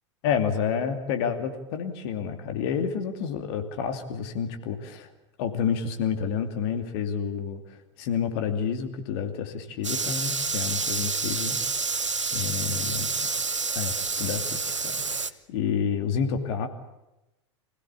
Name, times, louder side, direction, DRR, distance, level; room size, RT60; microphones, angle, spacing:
voice 1, 0.2-5.1 5.4-11.6 11.9-13.3 13.7-16.7, left 7 dB, 55° left, 7 dB, 2.7 m, -29 dB
sound 1, 9.8-15.3, right 4 dB, 90° right, 0.9 m, -28 dB
26.0 x 16.5 x 8.3 m, 0.97 s
figure-of-eight pair, 85°, 15 cm